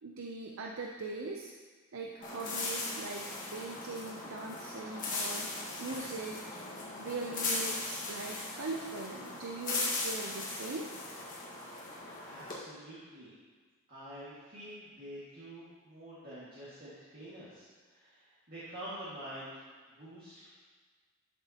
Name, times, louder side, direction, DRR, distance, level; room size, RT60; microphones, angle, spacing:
voice 1, 0.0-1.5 1.9-6.4 7.0-10.9, right 3 dB, 70° right, 0 dB, 0.6 m, -41 dB
sound 1, 2.2-12.6, left 3 dB, 35° left, 1.6 m, -38 dB
voice 2, 12.2-13.3 13.9-19.5 19.9-20.5, right 1 dB, 45° right, -10 dB, 2.0 m, -47 dB
12.0 x 6.8 x 2.9 m, 1.5 s
head